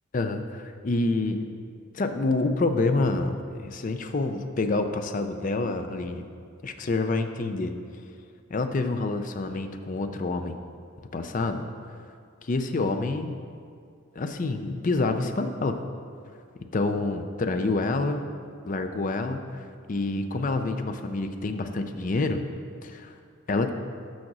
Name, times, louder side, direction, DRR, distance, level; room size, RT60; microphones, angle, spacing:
voice 1, 0.1-1.5 1.9-6.2 6.6-7.7 8.5-10.6 11.1-11.7 12.4-13.3 14.1-15.8 16.7-18.3 18.6-22.4 22.8-23.1 23.5-23.7, left 3 dB, 40° left, 7 dB, 0.4 m, -27 dB
6.3 x 5.8 x 6.1 m, 2.2 s
head